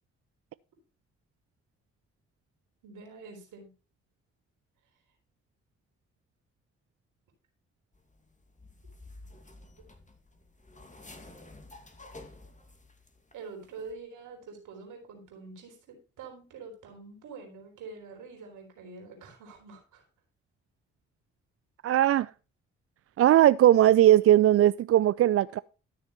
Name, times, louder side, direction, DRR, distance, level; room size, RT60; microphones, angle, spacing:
voice 1, 2.8-3.7 13.3-20.1, right 4 dB, 70° right, 3.9 m, -46 dB
sound 1, 7.9-13.3 13.6-13.9, left 2 dB, 25° left, 2.5 m, -51 dB
voice 2, 21.8-22.3 23.2-25.6, right 13 dB, 50° right, 0.4 m, -19 dB
13.0 x 6.7 x 4.4 m
hypercardioid pair, 40°, 31 cm